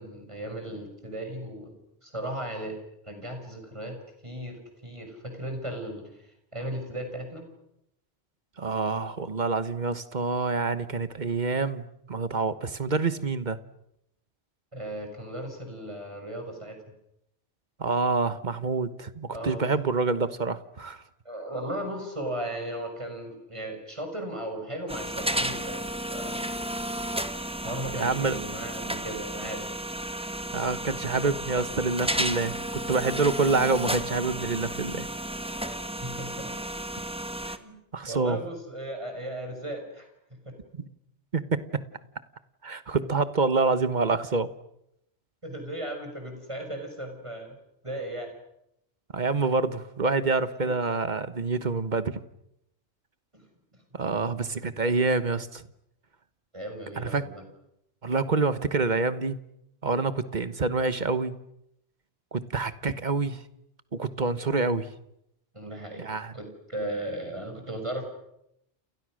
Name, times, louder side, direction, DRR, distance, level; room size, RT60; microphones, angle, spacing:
voice 1, 0.0-1.7 2.0-2.8 3.0-7.4 14.7-16.8 19.3-19.7 21.2-26.4 27.6-29.6 35.6-36.5 37.6-37.8 38.0-40.1 40.4-40.5 45.4-47.6 47.8-48.3 50.6-50.7 53.3-53.4 56.5-57.4 65.5-66.1 66.3-68.1, right 1 dB, 25° right, 4 dB, 6.2 m, -36 dB
voice 2, 8.6-13.6 17.8-21.0 28.0-28.4 30.5-35.1 37.9-38.4 41.3-41.8 42.6-44.5 49.1-52.1 53.9-55.6 57.0-57.2 58.0-59.4 59.8-61.4 62.3-63.4 63.9-64.9 66.0-66.3, right 4 dB, 40° right, 13 dB, 1.3 m, -27 dB
sound 1, 24.9-37.6, right 1 dB, 5° right, 1.4 m, -33 dB
29.5 x 29.0 x 6.4 m, 0.80 s
omnidirectional pair, 1.2 m